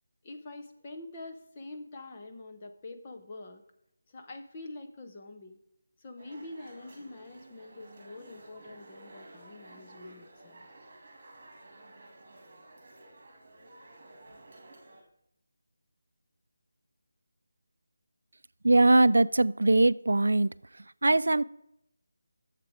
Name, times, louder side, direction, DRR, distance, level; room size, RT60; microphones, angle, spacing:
voice 1, 0.2-3.6 4.1-5.6 6.0-10.7, left 2 dB, 20° left, 0.8 m, -45 dB
sound 1, 6.2-15.0, right 2 dB, 30° right, 2.4 m, -52 dB
voice 2, 18.6-20.5 21.0-21.4, right 2 dB, 85° right, 0.4 m, -21 dB
11.0 x 7.5 x 4.9 m
figure-of-eight pair, 175°, 0 cm